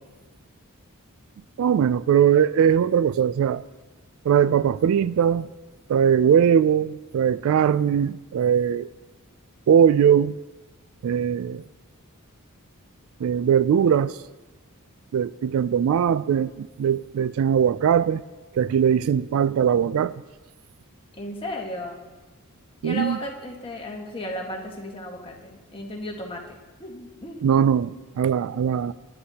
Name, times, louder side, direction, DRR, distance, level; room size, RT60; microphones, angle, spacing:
voice 1, 1.6-3.6 4.3-5.5 5.9-8.9 9.7-10.3 11.0-11.6 13.2-14.2 15.1-18.2 18.5-20.2 22.8-23.2 27.4-28.9, right 8 dB, 65° right, 0.3 m, -20 dB
voice 2, 21.1-22.0 22.8-27.5, left 1 dB, 25° left, 1.5 m, -35 dB
22.0 x 9.9 x 2.9 m
head